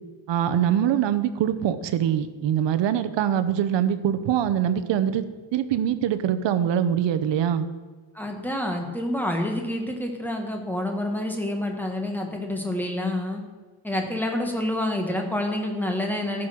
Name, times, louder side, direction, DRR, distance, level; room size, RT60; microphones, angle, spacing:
voice 1, 0.3-5.3 5.5-7.7, right 9 dB, 65° right, 12 dB, 0.9 m, -23 dB
voice 2, 8.1-13.4 13.8-16.5, left 1 dB, 5° left, 3 dB, 1.4 m, -28 dB
14.0 x 6.3 x 6.3 m, 1.4 s
cardioid pair, 165°, 47 cm